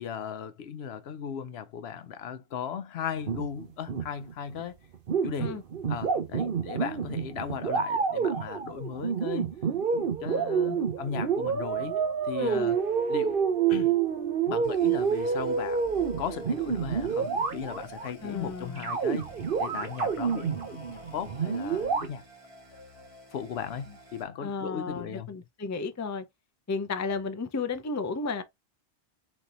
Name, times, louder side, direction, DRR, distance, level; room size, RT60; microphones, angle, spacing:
voice 1, 0.0-4.8 5.2-5.6 5.9-9.6 10.2-12.8 13.1-13.4 13.7-14.0 14.5-22.3 23.3-25.4, left 8 dB, 70° left, 0.9 m, -37 dB
sound 1, 3.2-4.6 4.9-18.1 18.8-22.1, right 6 dB, 55° right, 1.0 m, -28 dB
voice 2, 12.4-12.7 18.2-18.9 24.4-26.2 26.7-28.4, left 4 dB, 25° left, 0.4 m, -33 dB
sound 2, 14.6-24.2, right 1 dB, 25° right, 1.7 m, -49 dB
4.1 x 3.3 x 3.9 m
omnidirectional pair, 1.1 m